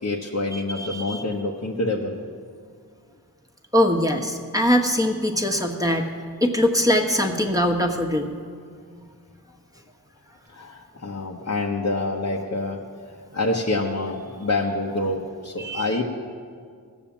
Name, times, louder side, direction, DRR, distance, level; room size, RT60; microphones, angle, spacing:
voice 1, 0.0-2.2 10.5-12.8 13.3-16.0, left 2 dB, 45° left, -1 dB, 1.1 m, -26 dB
voice 2, 0.5-1.2 3.7-6.1 6.4-8.3 15.6-15.9, equal, 10° right, 2 dB, 1.3 m, -22 dB
16.5 x 7.2 x 7.3 m, 2.1 s
wide cardioid pair, 55°, 38 cm